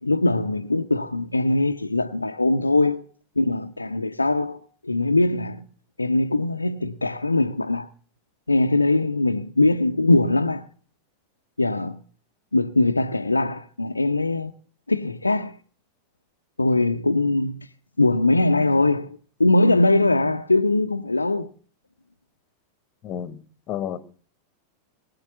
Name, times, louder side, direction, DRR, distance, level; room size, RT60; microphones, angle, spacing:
voice 1, 0.0-3.0 3.4-5.6 6.0-7.9 8.5-10.7 11.6-12.0 12.5-14.5 14.9-15.6 16.6-17.7 18.0-21.5, left 2 dB, 80° left, 0.8 m, -21 dB
voice 2, 23.0-24.0, left 9 dB, 35° left, 1.6 m, -31 dB
22.0 x 8.9 x 7.1 m
figure-of-eight pair, 90°, 0 cm